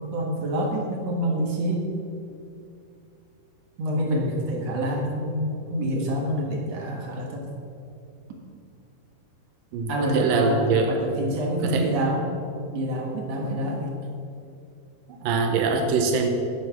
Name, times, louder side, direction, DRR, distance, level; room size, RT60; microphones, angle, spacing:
voice 1, 0.0-1.9 3.8-7.5 9.9-12.2 12.7-13.9, right 1 dB, 55° right, 0 dB, 2.4 m, -27 dB
voice 2, 9.7-11.0 11.6-11.9 15.1-16.3, right 4 dB, 80° right, 4 dB, 2.6 m, -24 dB
9.5 x 9.4 x 6.0 m, 2.5 s
omnidirectional pair, 3.9 m